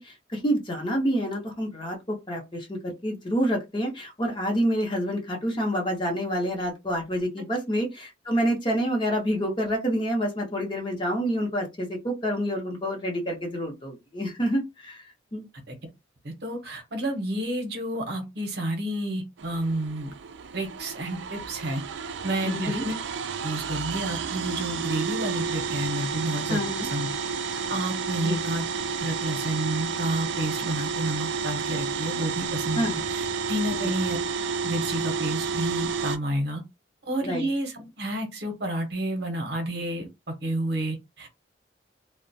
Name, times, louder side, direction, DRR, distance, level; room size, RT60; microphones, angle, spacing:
voice 1, 0.0-15.0 15.3-15.4 22.4-22.9 26.5-26.9 28.2-28.4 32.8-33.0 33.8-33.9 37.2-37.5, equal, 25° left, 0.7 m, -28 dB
voice 2, 16.2-20.1 20.5-21.8 22.2-22.9 23.4-26.6 26.9-27.1 27.5-28.6 29.0-34.2 34.6-36.6 37.1-40.1 40.4-41.4, right 1 dB, 60° right, 0.8 m, -30 dB
sound 1, 19.4-36.2, right 5 dB, 80° right, 0.3 m, -31 dB
2.3 x 2.1 x 2.6 m
head